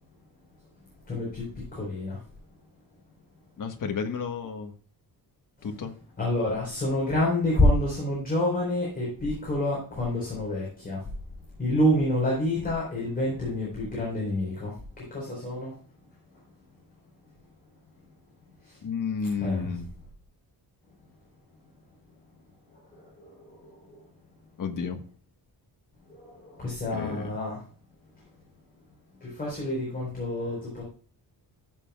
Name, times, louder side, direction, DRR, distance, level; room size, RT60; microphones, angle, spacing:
voice 1, 1.1-2.2 5.6-5.8 6.2-11.1 11.6-15.8 18.6-18.8 19.4-19.8 22.7-24.0 26.1-27.6 29.2-30.8, left 1 dB, 20° left, -5 dB, 4.4 m, -28 dB
voice 2, 3.6-4.7 5.6-5.9 18.8-19.8 24.6-25.0 26.9-27.3, left 5 dB, 50° left, 5 dB, 1.5 m, -31 dB
14.5 x 7.5 x 2.4 m, 0.43 s
wide cardioid pair, 170°, 40 cm